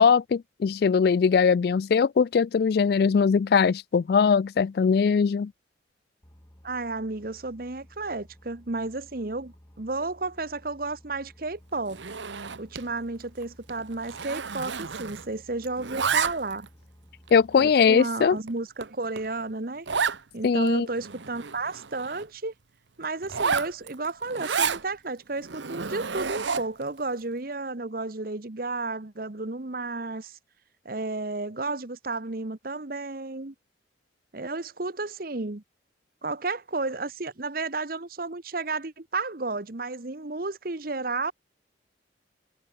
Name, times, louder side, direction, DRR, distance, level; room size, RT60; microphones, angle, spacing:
voice 1, 0.0-5.5 17.3-18.4 20.4-20.9, left 6 dB, 55° left, 0.3 m, -21 dB
Boat Water vehicle, 6.2-17.7, equal, 15° left, 1.7 m, -55 dB
voice 2, 6.6-12.0 12.6-16.7 17.6-19.9 20.3-22.5 23.0-30.4 30.8-33.5 34.3-35.6 36.2-41.3, right 3 dB, 50° right, 1.1 m, -32 dB
Zipper (clothing), 11.9-12.9 13.2-13.4 13.7-15.4 15.6-16.7 17.3-17.4 18.0-18.1 18.5-18.6 18.8-18.9 19.2-19.3 19.9-20.2 20.7-20.8 21.0-22.3 23.2-24.8 25.4-26.8, right 6 dB, 75° right, 1.0 m, -30 dB
head